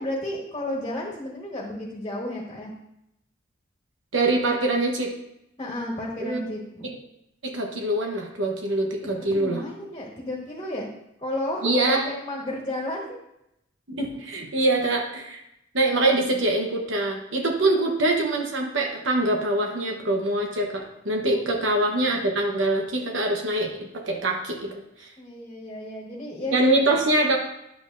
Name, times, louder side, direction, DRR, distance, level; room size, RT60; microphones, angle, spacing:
voice 1, 0.0-2.7 5.6-6.9 9.0-10.9 11.2-13.2 21.3-21.4 25.2-26.6 26.9-27.0, left 1 dB, 25° left, -4 dB, 1.4 m, -32 dB
voice 2, 4.1-5.1 6.2-6.4 6.8-7.0 7.4-9.6 11.6-12.1 13.9-15.4 15.7-25.1 26.5-27.4, right 2 dB, 80° right, 1 dB, 1.1 m, -24 dB
10.5 x 7.1 x 2.6 m, 0.82 s
head